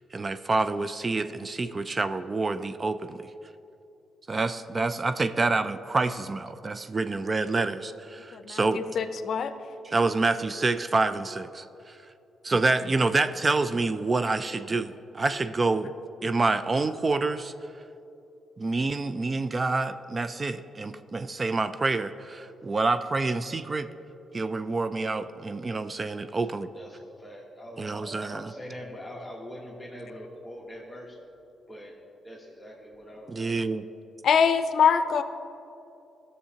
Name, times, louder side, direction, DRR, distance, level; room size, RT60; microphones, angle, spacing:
voice 1, 0.0-3.2 4.3-8.8 9.8-12.0 12.4-15.9 16.2-17.5 18.6-23.9 24.3-26.7 27.8-28.5 33.3-33.8, right 3 dB, 35° right, 11 dB, 0.3 m, -27 dB
voice 2, 8.3-9.5 34.2-35.2, left 7 dB, 65° left, 10 dB, 0.5 m, -23 dB
voice 3, 26.7-31.2 31.7-31.9 32.2-33.6, equal, 5° left, -5 dB, 1.3 m, -43 dB
15.0 x 6.8 x 2.9 m, 2.8 s
cardioid pair, 80°, 0 cm